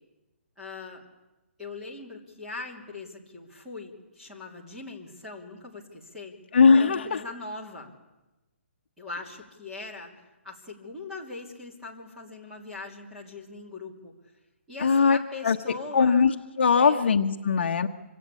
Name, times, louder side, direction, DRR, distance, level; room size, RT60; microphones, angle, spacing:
voice 1, 0.6-1.1 1.6-6.4 6.7-7.9 9.0-14.1 14.7-16.2 16.8-17.0, left 3 dB, 5° right, -4 dB, 3.0 m, -41 dB
voice 2, 6.5-7.2 14.8-15.2 15.4-15.6 15.9-17.9, left 5 dB, 50° left, 5 dB, 1.2 m, -20 dB
26.5 x 25.5 x 8.4 m, 1.0 s
hypercardioid pair, 175°, 7 cm